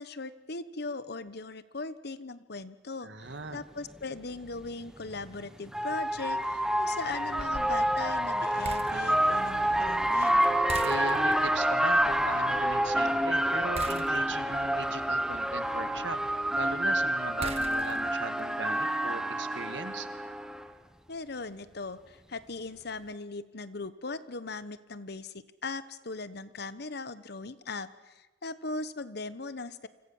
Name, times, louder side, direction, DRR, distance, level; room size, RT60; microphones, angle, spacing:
voice 1, 0.0-10.4 21.1-29.9, left 3 dB, 60° left, 14 dB, 1.2 m, -39 dB
voice 2, 3.0-3.6 10.8-16.2 16.6-20.1, right 3 dB, 70° right, 10 dB, 1.9 m, -39 dB
sound 1, 3.5-3.6 5.1-20.7, right 1 dB, 5° right, 1.4 m, -28 dB
sound 2, 7.4-18.3, right 3 dB, 35° right, 1.4 m, -45 dB
29.0 x 25.5 x 7.3 m, 1.1 s
head